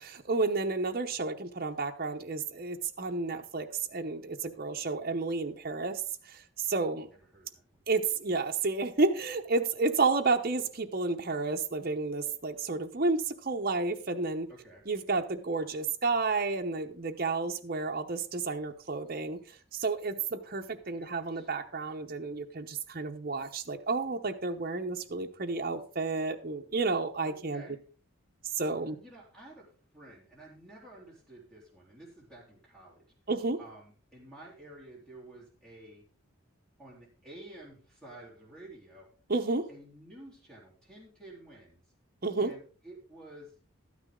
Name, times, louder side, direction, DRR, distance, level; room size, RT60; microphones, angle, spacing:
voice 1, 0.0-6.0 6.3-7.1 7.9-14.5 14.9-19.4 19.7-27.6 28.6-29.0 33.3-33.6 39.3-39.7 42.2-42.5, right 3 dB, 40° right, 0.8 m, -31 dB
voice 2, 7.0-7.8 14.5-14.8 20.8-21.5 27.3-27.8 29.0-29.7 29.9-33.0 33.6-36.0 36.8-39.1 39.7-41.8 42.4-43.5, right 1 dB, 5° left, 3.5 m, -51 dB
12.0 x 9.6 x 3.8 m
head